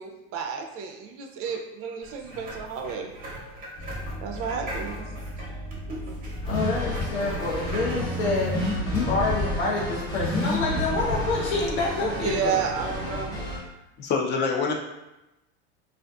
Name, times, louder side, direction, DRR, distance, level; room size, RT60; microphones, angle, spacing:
voice 1, 0.0-3.1 4.2-5.1 5.4-5.5 12.0-13.4, right 6 dB, 45° right, 3 dB, 0.4 m, -31 dB
sound 1, 2.0-8.5, right 1 dB, 25° right, 0.8 m, -39 dB
Car / Accelerating revving vroom, 3.8-13.0, left 1 dB, 60° left, 1.2 m, -32 dB
voice 2, 6.3-8.5 8.9-13.2, left 3 dB, 85° left, -5 dB, 0.9 m, -28 dB
sound 2, 6.5-13.6, equal, 10° left, 0.8 m, -35 dB
voice 3, 14.0-14.7, left 5 dB, 35° left, 1 dB, 0.4 m, -25 dB
2.4 x 2.4 x 2.3 m, 0.97 s
supercardioid pair, 105°, 33 cm